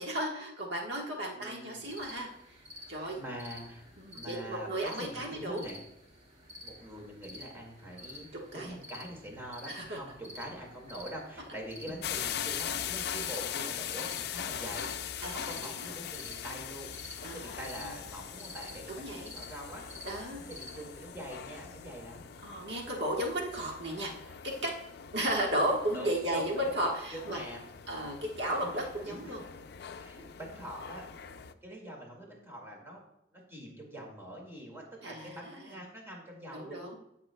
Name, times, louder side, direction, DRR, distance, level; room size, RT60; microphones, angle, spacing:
voice 1, 0.0-2.6 2.9-3.2 4.0-5.7 8.5-8.8 9.7-10.0 15.2-15.9 17.2-17.9 19.0-19.3 20.0-20.4 22.4-24.7 25.1-27.4 27.9-29.4 35.0-35.8 36.5-37.0, right 1 dB, 70° right, -1 dB, 1.4 m, -34 dB
voice 2, 1.3-1.9 3.0-3.8 4.1-5.8 6.6-16.9 17.2-20.1 20.5-22.3 25.9-26.7 27.1-28.2 28.5-29.5 30.0-33.0 33.3-37.0, equal, 15° right, -2 dB, 2.0 m, -44 dB
sound 1, 1.9-21.0, left 1 dB, 40° right, 1.8 m, -51 dB
sound 2, 12.0-31.5, left 9 dB, 60° left, 0.4 m, -41 dB
15.5 x 5.8 x 2.2 m, 0.81 s
head